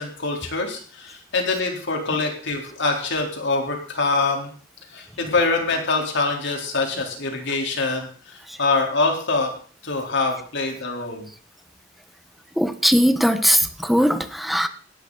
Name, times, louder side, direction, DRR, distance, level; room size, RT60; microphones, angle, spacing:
voice 1, 0.0-4.5 4.9-9.5 9.8-11.3, left 3 dB, 65° left, 2 dB, 3.9 m, -24 dB
voice 2, 12.6-14.7, equal, ahead, 9 dB, 1.2 m, -19 dB
17.5 x 12.5 x 4.1 m, 0.43 s
head